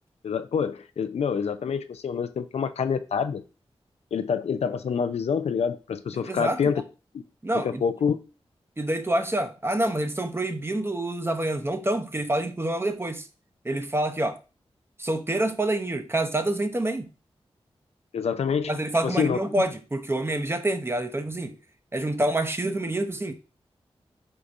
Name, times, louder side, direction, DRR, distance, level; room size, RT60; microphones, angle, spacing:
voice 1, 0.2-3.4 4.1-6.8 7.5-8.2 18.1-18.7 19.0-19.4, left 6 dB, 80° left, 0.4 m, -26 dB
voice 2, 6.1-6.6 7.4-7.8 8.8-13.3 13.6-14.4 15.0-17.1 18.7-21.6 21.9-23.3, right 1 dB, 20° right, 0.7 m, -27 dB
4.7 x 4.0 x 2.5 m
cardioid pair, 45°, 11 cm